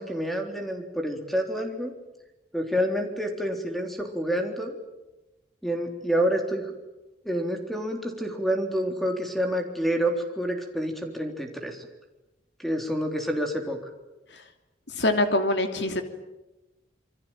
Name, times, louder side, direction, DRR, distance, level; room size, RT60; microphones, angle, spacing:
voice 1, 0.0-1.9 2.5-4.7 5.6-6.7 7.2-11.9 12.6-13.8, equal, ahead, 4 dB, 3.6 m, -28 dB
voice 2, 14.9-16.0, left 1 dB, 75° left, 7 dB, 2.8 m, -24 dB
27.5 x 23.5 x 9.1 m, 1.0 s
head